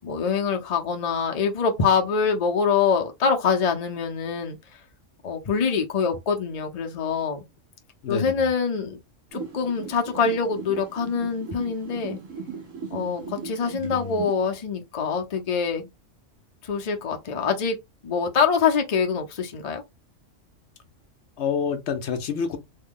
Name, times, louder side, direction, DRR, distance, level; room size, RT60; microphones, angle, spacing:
voice 1, 0.0-4.6 5.2-7.4 8.1-9.0 9.3-12.2 12.9-15.9 16.6-17.8 18.0-19.8, left 6 dB, 40° left, 0.6 m, -24 dB
voice 2, 8.0-8.5 13.8-14.2 21.4-22.6, left 6 dB, 70° left, 0.8 m, -28 dB
sound 1, 9.3-14.3, right 6 dB, 80° right, 1.3 m, -38 dB
3.2 x 2.1 x 3.6 m
omnidirectional pair, 1.3 m